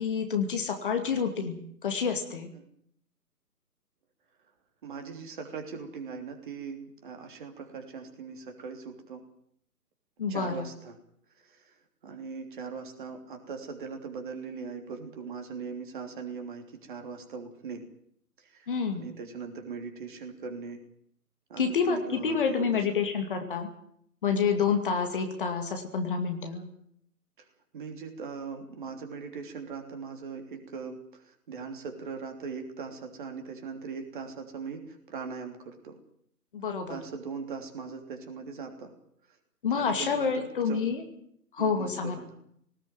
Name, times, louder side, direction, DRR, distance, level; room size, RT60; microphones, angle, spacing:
voice 1, 0.0-2.5 10.2-10.7 18.7-19.0 21.6-23.7 24.2-26.7 36.5-37.0 39.6-41.0 41.5-42.2, left 6 dB, 35° left, 5 dB, 2.5 m, -28 dB
voice 2, 4.8-9.2 10.3-10.9 11.4-11.7 12.0-17.8 18.4-20.8 21.5-22.8 27.7-36.0 36.9-38.9 39.7-40.8 41.6-42.3, right 5 dB, 30° right, 4 dB, 3.2 m, -40 dB
19.0 x 19.0 x 9.2 m, 0.69 s
figure-of-eight pair, 140°, 48 cm